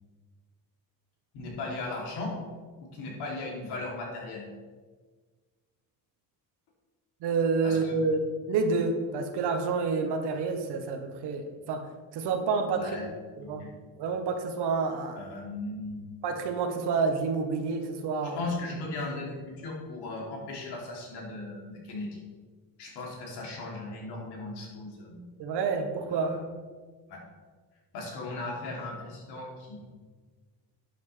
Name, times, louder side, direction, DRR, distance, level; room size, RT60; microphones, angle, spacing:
voice 1, 1.3-2.3 2.8-4.5 7.6-7.9 12.7-13.1 13.6-13.7 15.1-16.0 18.2-22.2 22.8-25.2 26.1-26.5 27.1-27.2 27.9-29.9, left 2 dB, 90° left, -3 dB, 3.0 m, -37 dB
voice 2, 7.2-8.2 8.5-11.8 12.1-13.0 13.4-13.6 14.0-15.2 16.2-18.4 25.4-26.4, right 4 dB, 85° right, 4 dB, 1.3 m, -28 dB
11.5 x 8.1 x 3.3 m, 1.5 s
cardioid pair, 135°, 39 cm